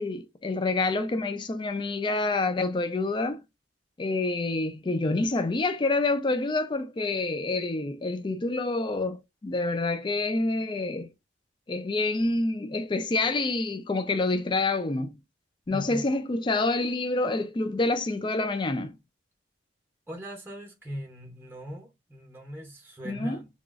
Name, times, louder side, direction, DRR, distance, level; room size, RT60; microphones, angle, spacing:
voice 1, 0.0-3.4 4.0-11.1 11.7-15.2 15.7-19.0 23.0-23.4, left 2 dB, 25° left, 0.3 m, -27 dB
voice 2, 15.7-16.0 20.1-23.5, equal, 10° right, 0.7 m, -40 dB
2.9 x 2.4 x 2.4 m
head